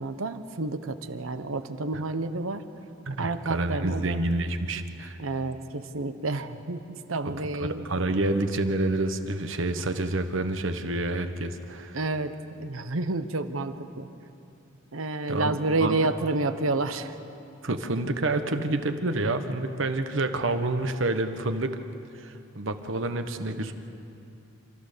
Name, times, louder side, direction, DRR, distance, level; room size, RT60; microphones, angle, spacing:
voice 1, 0.0-2.6 3.2-4.2 5.2-7.9 11.9-14.1 14.9-17.1, right 2 dB, 85° right, 10 dB, 1.0 m, -29 dB
voice 2, 3.1-5.2 7.6-12.0 15.3-16.0 17.6-21.7 22.1-23.7, right 2 dB, 70° right, 8 dB, 1.2 m, -28 dB
28.0 x 14.0 x 6.8 m, 2.7 s
head